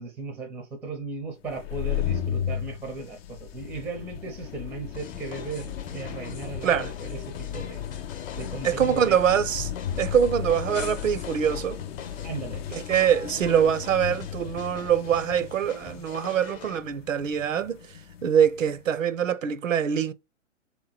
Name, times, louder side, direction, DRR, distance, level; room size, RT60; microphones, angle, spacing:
voice 1, 0.0-7.8 8.3-9.2 12.2-12.6, right 3 dB, 5° right, 0.5 m, -36 dB
sound 1, 1.5-18.9, left 9 dB, 55° left, 0.6 m, -35 dB
sound 2, 4.9-16.8, left 6 dB, 20° left, 0.8 m, -45 dB
sound 3, 5.4-5.9 6.3-6.7 7.0-9.7 10.1-10.4 10.7-11.6, left 5 dB, 90° left, 1.0 m, -47 dB
voice 2, 8.6-9.7 10.0-11.8 12.7-17.8 18.2-20.1, right 8 dB, 85° right, 0.6 m, -24 dB
3.5 x 2.9 x 4.1 m
figure-of-eight pair, 115°, 38 cm